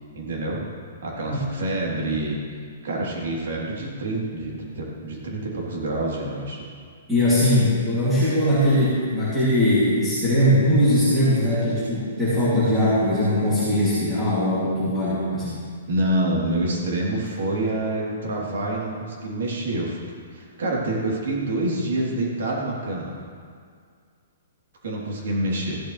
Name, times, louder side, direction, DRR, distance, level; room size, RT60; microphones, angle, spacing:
voice 1, 0.1-0.6 1.0-2.4 2.8-6.7 15.9-20.0 20.3-23.1 24.8-25.8, right 1 dB, 65° right, -3 dB, 3.4 m, -27 dB
voice 2, 7.1-15.6, left 1 dB, 5° right, -13 dB, 2.7 m, -20 dB
15.5 x 12.5 x 3.3 m, 2.1 s
hypercardioid pair, 170°, 0 cm